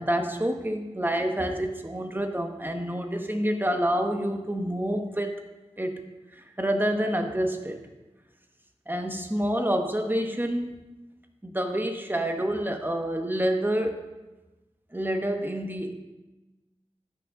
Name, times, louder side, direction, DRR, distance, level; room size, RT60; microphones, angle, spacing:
voice 1, 0.0-5.3 5.8-6.0 6.4-7.8 8.9-10.8 11.4-14.1 14.9-15.9, right 1 dB, 15° right, 4 dB, 1.2 m, -28 dB
15.0 x 6.2 x 3.7 m, 1.1 s
wide cardioid pair, 50°, 12 cm